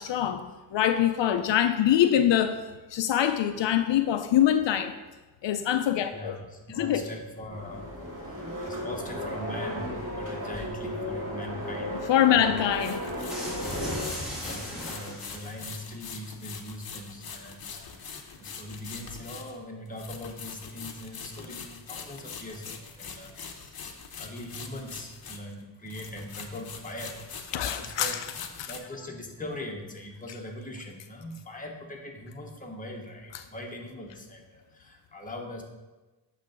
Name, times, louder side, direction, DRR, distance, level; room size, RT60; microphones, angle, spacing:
voice 1, 0.0-2.6 2.9-4.9 5.4-6.4 6.8-7.0 12.1-13.0 27.5-28.2 28.6-28.7, left 10 dB, 80° left, 9 dB, 0.5 m, -24 dB
voice 2, 6.1-7.9 8.2-8.4 8.6-12.1 12.4-12.6 13.6-27.2 27.5-28.2 28.7-35.6, left 1 dB, 20° left, 0 dB, 1.1 m, -41 dB
sound 1, 7.5-14.0, equal, 30° right, 2.2 m, -35 dB
sound 2, 12.7-25.6 25.9-28.8, left 6 dB, 55° left, 0.8 m, -43 dB
sound 3, 13.3-15.7, equal, ahead, 2.0 m, -36 dB
8.2 x 3.3 x 5.9 m, 1.2 s
wide cardioid pair, 115°, 43 cm